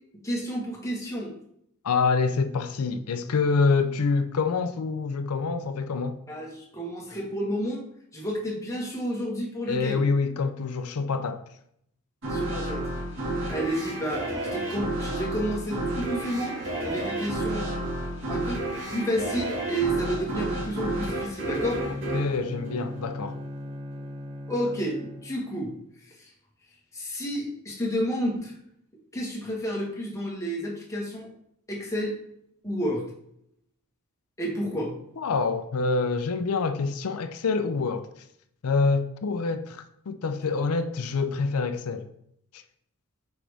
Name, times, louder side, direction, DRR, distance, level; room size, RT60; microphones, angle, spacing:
voice 1, 0.2-1.3 6.3-7.9 8.1-10.0 12.2-12.9 13.5-17.7 18.3-18.6 18.9-21.8 24.5-25.7 26.2-26.3 26.9-28.5 29.1-31.3 31.7-32.2 32.6-33.0 34.4-34.9, equal, 15° left, 1.4 m, -30 dB
voice 2, 1.8-6.2 9.7-11.4 22.1-23.4 35.2-38.1 38.6-42.1 42.5-42.6, left 4 dB, 80° left, 0.5 m, -26 dB
sound 1, 12.2-23.4, right 1 dB, 60° right, 1.8 m, -31 dB
Bowed string instrument, 21.5-25.6, left 1 dB, 20° right, 0.5 m, -38 dB
6.1 x 4.7 x 3.4 m
head